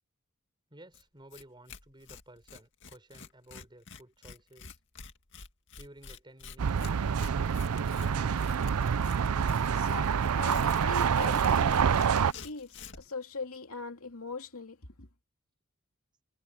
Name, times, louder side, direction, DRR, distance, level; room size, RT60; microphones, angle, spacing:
voice 1, 0.7-4.7 5.7-7.0, right 1 dB, 20° right, 4.9 m, -54 dB
Tearing, 0.9-1.0 1.3-1.4 1.7-13.1, left 6 dB, 55° left, 2.2 m, -49 dB
sound 1, 6.6-12.3, right 7 dB, 85° right, 0.5 m, -27 dB
voice 2, 9.7-15.1, left 3 dB, 75° left, 2.7 m, -41 dB
head